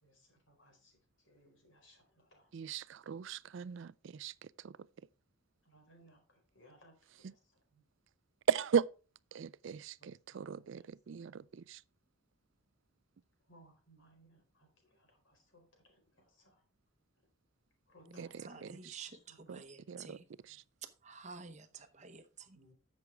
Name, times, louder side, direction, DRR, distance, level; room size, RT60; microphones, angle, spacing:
voice 1, 0.0-2.5 5.6-7.4 7.7-7.8 10.0-10.9 13.5-16.6 17.9-19.6 20.1-20.6 22.5-22.7, equal, 65° left, 4.4 m, -65 dB
voice 2, 2.5-4.8 7.2-7.3 8.5-8.9 9.3-11.8 18.2-19.1 19.5-19.6 19.9-20.6, right 7 dB, 60° right, 0.4 m, -37 dB
voice 3, 18.1-20.3 20.8-22.6, right 5 dB, 35° right, 0.9 m, -51 dB
11.0 x 7.3 x 3.4 m
head